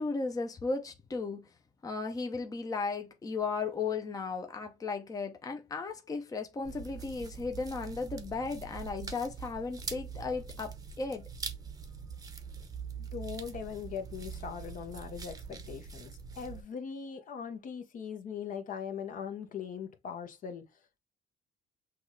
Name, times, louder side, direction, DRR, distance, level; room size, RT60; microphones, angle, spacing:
voice 1, 0.0-1.5 1.8-11.2, left 4 dB, 20° left, 0.7 m, -35 dB
sound 1, 6.6-16.6, right 5 dB, 20° right, 0.8 m, -43 dB
voice 2, 13.0-20.6, left 7 dB, 55° left, 1.0 m, -40 dB
6.1 x 2.5 x 3.1 m
cardioid pair, 110°, 17 cm